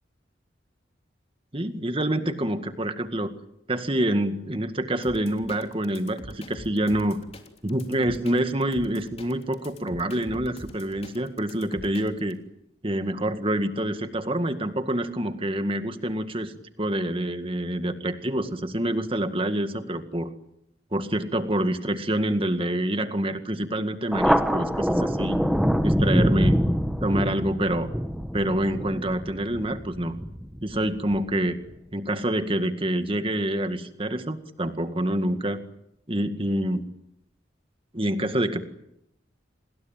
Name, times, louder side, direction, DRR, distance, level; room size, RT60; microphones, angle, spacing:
voice 1, 1.5-3.3 3.7-7.2 7.6-12.4 12.8-16.5 16.8-20.3 20.9-25.4 25.8-26.6 27.0-27.9 28.3-30.2 30.6-31.6 31.9-35.6 36.1-36.8 37.9-38.6, right 1 dB, 30° right, 9 dB, 2.0 m, -27 dB
sound 1, 5.0-12.3, left 1 dB, 35° left, 3.3 m, -44 dB
Thunder, 24.1-31.2, equal, ahead, 1.2 m, -25 dB
28.0 x 21.0 x 9.2 m, 0.81 s
head